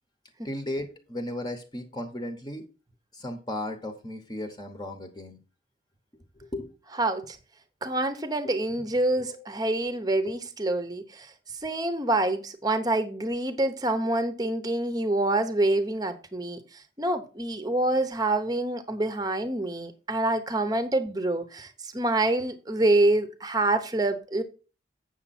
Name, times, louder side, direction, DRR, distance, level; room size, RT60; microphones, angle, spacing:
voice 1, 0.4-2.6 3.1-5.4 6.4-6.7 8.4-8.5 9.2-9.4 10.2-10.3, left 1 dB, 20° left, 1.0 m, -35 dB
voice 2, 7.0-7.4 7.8-11.3 11.6-24.4, right 2 dB, 20° right, 0.9 m, -26 dB
8.2 x 6.4 x 4.2 m
head